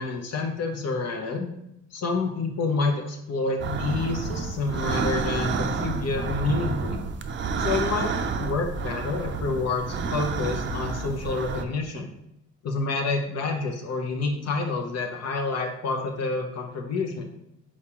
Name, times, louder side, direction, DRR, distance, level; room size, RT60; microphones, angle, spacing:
voice 1, 0.0-1.5 1.9-7.0 7.6-12.1 12.6-17.2, left 3 dB, 55° left, 3 dB, 0.8 m, -28 dB
sound 1, 3.6-11.6, right 4 dB, 40° right, 0.5 m, -29 dB
4.5 x 2.9 x 3.6 m, 0.79 s
cardioid pair, 90°, 30 cm